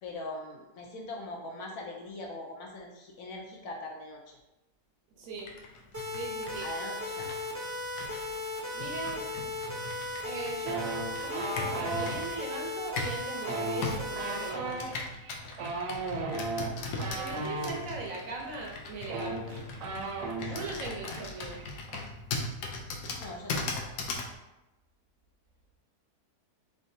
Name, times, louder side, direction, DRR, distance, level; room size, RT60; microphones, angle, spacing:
voice 1, 0.0-4.4 6.6-7.4 20.3-21.2 23.2-24.0, left 2 dB, 70° left, 1 dB, 0.9 m, -42 dB
voice 2, 5.2-5.6 6.1-6.7 8.7-9.3 10.2-10.9 11.1-15.0 17.1-19.8 20.5-21.6, right 3 dB, 65° right, 0 dB, 0.9 m, -40 dB
Computer keyboard, 5.4-13.3 13.8-24.3, left 3 dB, 85° left, 1.2 m, -39 dB
sound 1, 5.9-14.5, left 2 dB, 25° right, 0.3 m, -36 dB
sound 2, 10.7-12.1 13.4-17.7 18.7-18.8 19.0-20.7 21.0-21.2 21.5-22.0, right 3 dB, 85° right, 1.2 m, -35 dB
3.6 x 3.6 x 2.6 m, 0.97 s
omnidirectional pair, 1.7 m